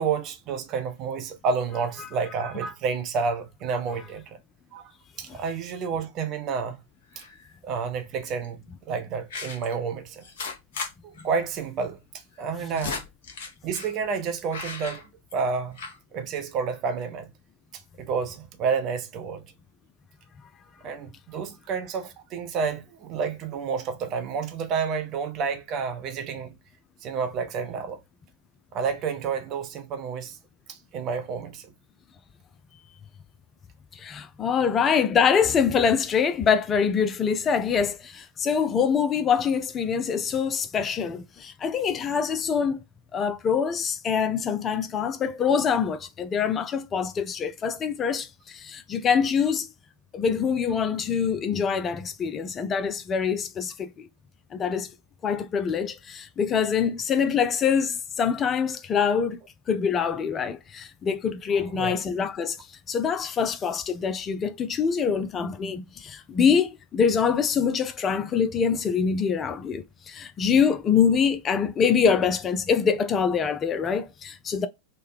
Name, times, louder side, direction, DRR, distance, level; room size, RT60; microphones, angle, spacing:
voice 1, 0.0-4.4 4.7-4.8 5.2-6.8 7.2-7.3 7.6-8.6 8.9-10.2 11.2-12.0 12.4-13.1 13.6-15.0 15.3-15.7 16.1-17.3 18.0-19.4 20.8-26.5 27.0-28.0 28.7-30.4 30.7-31.6 61.7-62.0, right 5 dB, 35° right, 0.7 m, -29 dB
sound 1, 7.1-7.5 8.3-8.5 9.3-9.7 10.2-10.9 11.2-11.3 11.5-11.6 12.4-13.9 14.5-15.5 15.8-16.0, left 4 dB, 55° left, 1.0 m, -36 dB
voice 2, 33.9-42.8 43.1-49.7 50.1-54.1 54.5-54.9 55.2-59.4 59.7-62.6 62.9-74.7, left 6 dB, 25° left, 0.3 m, -24 dB
3.3 x 2.1 x 3.2 m
figure-of-eight pair, 90°, 0 cm